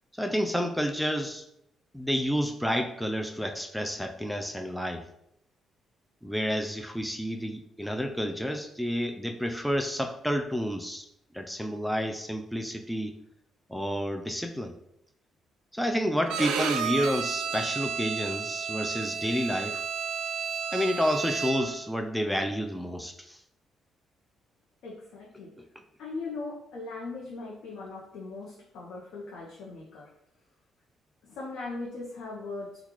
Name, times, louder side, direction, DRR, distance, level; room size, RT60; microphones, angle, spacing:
voice 1, 0.2-1.4 1.9-5.0 6.2-11.1 11.3-13.2 13.7-14.7 15.7-19.8 20.7-23.4 25.6-25.7, equal, ahead, 4 dB, 0.3 m, -30 dB
Bowed string instrument, 16.3-21.8, right 6 dB, 90° right, 0.3 m, -32 dB
voice 2, 24.8-25.5 26.0-30.1 31.2-32.8, left 3 dB, 80° left, -5 dB, 0.7 m, -39 dB
3.7 x 2.3 x 3.0 m, 0.78 s
cardioid pair, 90°, 0 cm